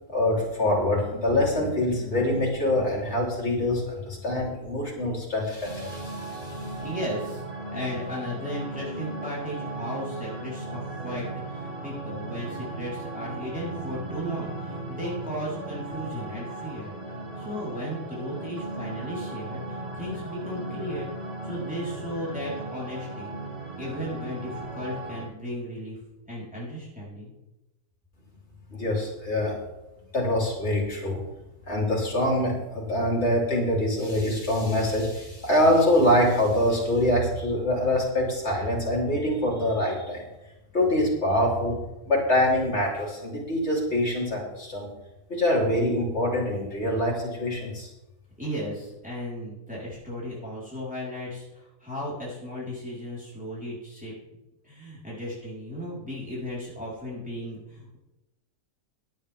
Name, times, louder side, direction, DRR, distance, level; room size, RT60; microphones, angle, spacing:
voice 1, 0.1-6.7 28.7-29.6 30.1-31.2 31.7-40.2 40.7-44.9 45.3-47.9, left 1 dB, 40° left, -3 dB, 4.1 m, -25 dB
sound 1, 5.6-25.2, right 2 dB, 40° right, 2.4 m, -36 dB
voice 2, 6.8-7.4 7.7-16.9 17.4-21.1 21.4-23.3 23.8-26.0 26.3-27.3 48.4-54.1 54.6-58.0, equal, 5° right, -7 dB, 4.3 m, -35 dB
16.5 x 11.5 x 3.7 m, 0.96 s
omnidirectional pair, 1.7 m